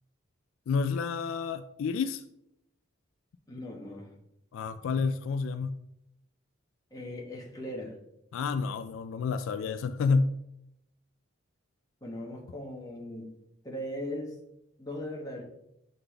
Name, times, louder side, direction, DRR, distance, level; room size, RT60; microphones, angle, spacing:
voice 1, 0.7-2.2 4.5-5.8 8.3-10.4, left 4 dB, 75° left, 0.3 m, -29 dB
voice 2, 3.5-4.1 6.9-8.0 12.0-13.3 13.6-14.4 14.8-15.4, left 1 dB, 20° left, 1.0 m, -38 dB
7.9 x 4.0 x 3.3 m
head